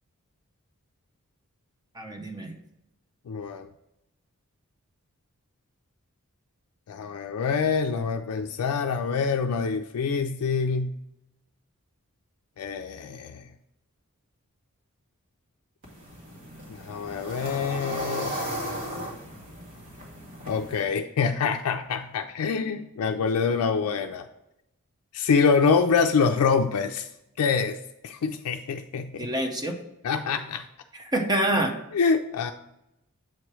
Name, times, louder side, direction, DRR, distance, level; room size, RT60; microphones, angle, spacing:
voice 1, 1.9-2.6 29.2-29.8 30.9-31.8, right 1 dB, 20° right, 4 dB, 0.6 m, -27 dB
voice 2, 3.3-3.7 6.9-10.9 12.6-13.4 16.7-18.3 20.5-24.3 25.1-27.1 27.4-27.8 28.0-29.3 30.0-30.6 31.9-32.5, left 5 dB, 80° left, 5 dB, 0.4 m, -25 dB
sound 1, 15.8-20.8, equal, 60° right, 1.9 m, -36 dB
7.5 x 3.0 x 4.7 m, 0.85 s
head